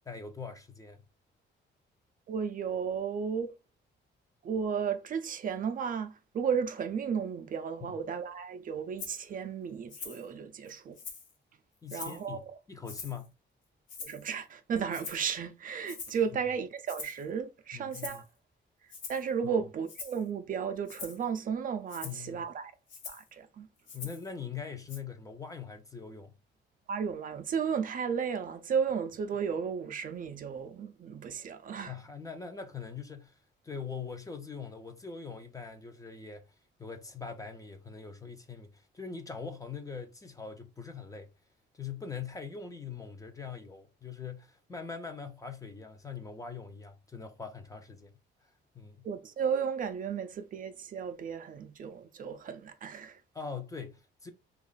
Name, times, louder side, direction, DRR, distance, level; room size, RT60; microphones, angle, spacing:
voice 1, 0.1-1.0 7.8-7.9 11.8-13.3 17.7-18.2 19.4-19.6 22.0-22.4 23.9-26.3 31.9-33.4 33.6-36.5 36.8-41.3 41.7-48.2 48.7-49.1 53.3-54.3, left 6 dB, 15° left, 0.5 m, -42 dB
voice 2, 2.3-3.6 4.4-11.0 11.9-12.5 14.0-18.3 19.1-22.7 23.1-23.7 26.9-31.9 49.0-53.2, right 6 dB, 45° right, 0.4 m, -34 dB
Rattle (instrument), 9.0-9.2 9.9-10.3 10.7-11.3 11.9-12.3 12.9-13.3 13.9-14.3 14.9-15.3 15.9-16.2 16.9-17.2 17.9-18.3 18.9-19.3 19.9-20.2 20.9-21.2 21.9-22.2 22.9-23.3 23.9-24.3 24.9-25.0, left 5 dB, 75° left, 1.0 m, -44 dB
2.9 x 2.4 x 3.9 m
cardioid pair, 145°, 20 cm